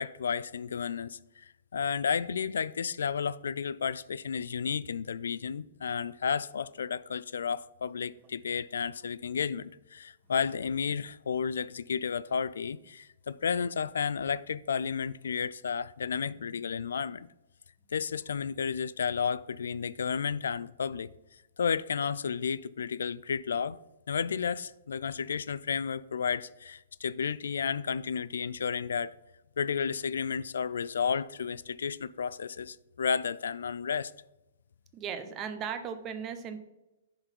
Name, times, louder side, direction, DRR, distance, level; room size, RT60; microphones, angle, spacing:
voice 1, 0.0-17.3 17.9-21.1 21.6-23.8 24.1-29.1 29.6-34.1, left 6 dB, 85° left, 0.3 m, -32 dB
voice 2, 34.9-36.6, right 7 dB, 25° right, 0.8 m, -37 dB
10.5 x 4.0 x 4.4 m
hypercardioid pair, 145°, 0 cm